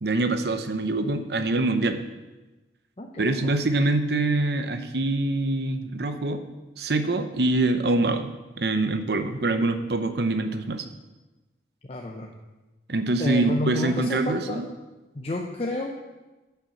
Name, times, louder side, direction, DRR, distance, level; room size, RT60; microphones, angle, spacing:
voice 1, 0.0-2.0 3.2-6.4 6.8-8.3 8.6-10.8 12.9-14.7, right 2 dB, 70° right, 8 dB, 0.8 m, -24 dB
voice 2, 3.0-3.6 11.9-12.4 13.2-14.6 15.1-15.9, left 1 dB, 35° left, 1 dB, 0.7 m, -31 dB
9.7 x 5.8 x 7.2 m, 1.1 s
head